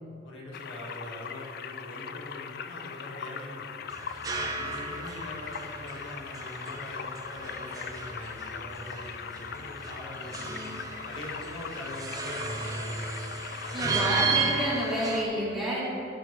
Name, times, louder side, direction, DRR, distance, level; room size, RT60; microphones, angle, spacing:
voice 1, 0.2-3.9 4.5-10.6 11.1-13.2 13.6-14.3, left 1 dB, 85° left, -3 dB, 1.8 m, -43 dB
sound 1, 0.5-15.2, left 7 dB, 50° left, 0.3 m, -40 dB
sound 2, 3.9-15.2, right 4 dB, 20° right, 0.7 m, -34 dB
voice 2, 13.7-15.8, equal, ahead, -9 dB, 2.1 m, -29 dB
12.5 x 6.8 x 3.3 m, 2.8 s
head